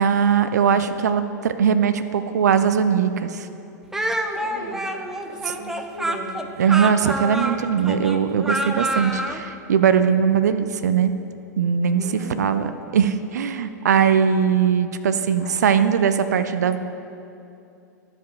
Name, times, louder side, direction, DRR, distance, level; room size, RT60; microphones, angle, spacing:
voice 1, 0.0-3.5 5.4-5.5 6.6-11.1 11.6-12.7 12.9-16.8, right 7 dB, 65° right, 11 dB, 0.4 m, -20 dB
Speech, 3.9-9.4, right 1 dB, 5° right, 0.4 m, -27 dB
voice 2, 4.3-4.8 5.2-6.3 11.9-12.4 15.4-15.5, right 1 dB, 70° left, -2 dB, 1.7 m, -37 dB
11.5 x 4.9 x 4.8 m, 2.7 s
figure-of-eight pair, 95°, 10 cm